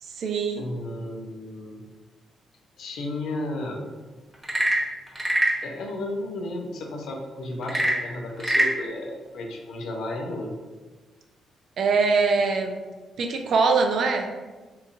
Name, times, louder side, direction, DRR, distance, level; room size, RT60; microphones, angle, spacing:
voice 1, 0.0-0.7 11.8-12.8 13.2-14.3, right 4 dB, 65° right, 4 dB, 0.3 m, -23 dB
voice 2, 0.5-1.8 2.8-4.0 5.6-10.6, left 1 dB, 75° left, 1 dB, 0.5 m, -33 dB
Frog / Percussion / Wood, 4.3-5.6 7.6-8.8, right 1 dB, 10° right, 0.7 m, -23 dB
2.8 x 2.4 x 2.4 m, 1.3 s
supercardioid pair, 55°, 0 cm